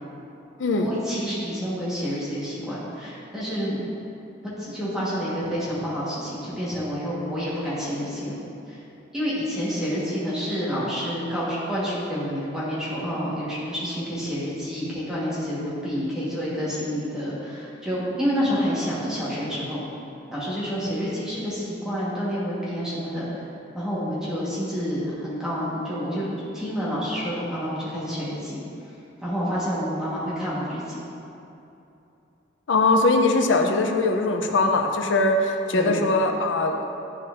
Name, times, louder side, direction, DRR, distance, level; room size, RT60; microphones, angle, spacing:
voice 1, 0.8-3.9 4.6-8.4 8.7-8.8 9.1-19.8 20.3-23.3 23.7-28.6 29.2-31.0 35.7-36.0, equal, 5° right, -10 dB, 1.4 m, -28 dB
voice 2, 32.7-36.8, left 2 dB, 75° left, 4 dB, 0.5 m, -21 dB
10.5 x 4.2 x 2.6 m, 2.8 s
head